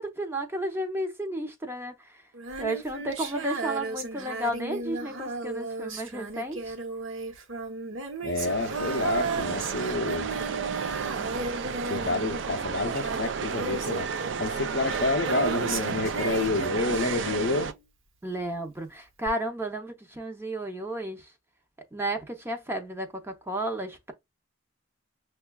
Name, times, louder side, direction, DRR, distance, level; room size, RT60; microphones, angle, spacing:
voice 1, 0.0-1.9 2.6-6.7 18.2-21.2 21.9-24.1, right 1 dB, 10° right, 0.6 m, -32 dB
Female singing, 2.3-17.7 19.3-19.4, right 4 dB, 80° right, 0.9 m, -35 dB
voice 2, 8.2-10.3 11.9-14.1 14.4-17.7, left 3 dB, 55° left, 0.5 m, -29 dB
sound 1, 8.4-17.7, right 6 dB, 65° right, 0.4 m, -32 dB
6.4 x 2.3 x 2.3 m
head